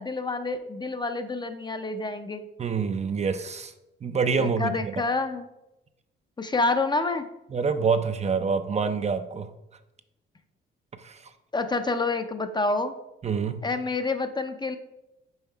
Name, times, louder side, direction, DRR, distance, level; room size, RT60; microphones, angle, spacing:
voice 1, 0.0-2.4 4.4-5.5 6.4-7.3 11.5-12.9 13.6-14.8, left 3 dB, 20° left, 8 dB, 0.6 m, -28 dB
voice 2, 2.6-3.7 4.0-4.9 7.5-9.5 11.0-11.2 13.2-13.6, right 5 dB, 35° right, 9 dB, 0.5 m, -26 dB
5.6 x 4.7 x 4.5 m, 0.91 s
cardioid pair, 90°, 20 cm